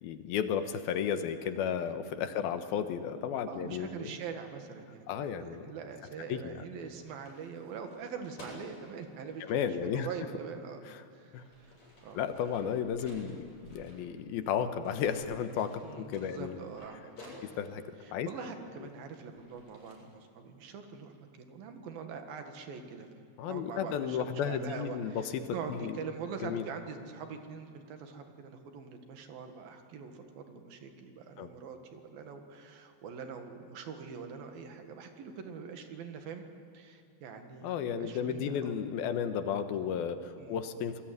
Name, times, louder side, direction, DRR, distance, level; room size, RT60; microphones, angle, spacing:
voice 1, 0.0-4.1 5.1-5.7 6.3-6.6 9.5-10.1 10.9-11.0 11.3-11.4 12.1-16.6 17.4-17.8 18.1-18.3 23.4-26.0 26.4-26.6 31.4-31.5 37.6-41.0, left 8 dB, 85° left, 9 dB, 3.0 m, -33 dB
voice 2, 3.5-10.8 11.1-11.7 12.0-12.2 15.8-17.4 18.0-36.5 36.7-38.8 40.4-40.6, right 6 dB, 75° right, 5 dB, 3.6 m, -44 dB
sound 1, 6.8-9.4 10.6-10.7 11.2-14.6 14.8-17.8 18.5-19.9, left 1 dB, 45° left, 9.4 m, -55 dB
27.5 x 20.5 x 9.4 m, 2.3 s
omnidirectional pair, 4.3 m